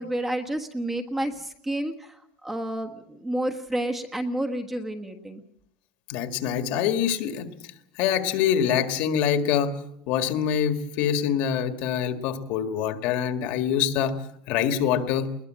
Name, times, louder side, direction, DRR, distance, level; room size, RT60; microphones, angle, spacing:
voice 1, 0.0-5.4, right 1 dB, 10° right, 4 dB, 1.4 m, -30 dB
voice 2, 6.1-7.5 8.0-9.7 10.1-14.1 14.5-15.3, left 8 dB, 55° left, 9 dB, 1.8 m, -25 dB
21.0 x 19.5 x 7.6 m, 0.77 s
cardioid pair, 165°, 3 cm